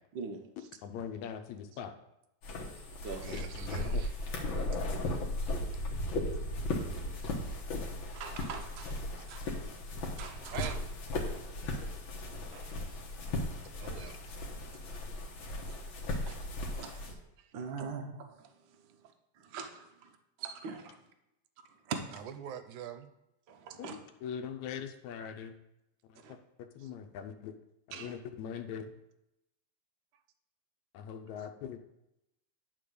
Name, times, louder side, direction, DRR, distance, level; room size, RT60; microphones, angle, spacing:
voice 1, 0.8-1.9 3.3-3.4 3.8-4.0 23.8-25.5 26.1-27.5 27.9-28.9 30.9-31.8, left 8 dB, 75° left, 7 dB, 2.0 m, -42 dB
sound 1, 2.4-17.1, left 1 dB, 55° left, 1.6 m, -36 dB
voice 2, 3.2-4.2 10.5-10.8 12.7-12.8 13.5-13.6 13.8-14.3 15.7-15.8 16.2-16.8 17.4-17.5 22.1-23.1 23.7-23.8 26.8-26.9 28.0-28.1, right 9 dB, 90° right, 9 dB, 2.2 m, -45 dB
voice 3, 8.1-8.9 9.3-9.4 10.2-10.7 12.5-12.7 15.6-15.7 16.3-16.4 16.7-17.1 17.5-18.5 19.4-20.1 20.4-21.0 21.9-22.0 23.5-23.9 26.2-26.3 27.9-28.1, right 6 dB, 70° right, 4 dB, 1.1 m, -42 dB
10.0 x 3.8 x 6.7 m, 0.87 s
omnidirectional pair, 3.4 m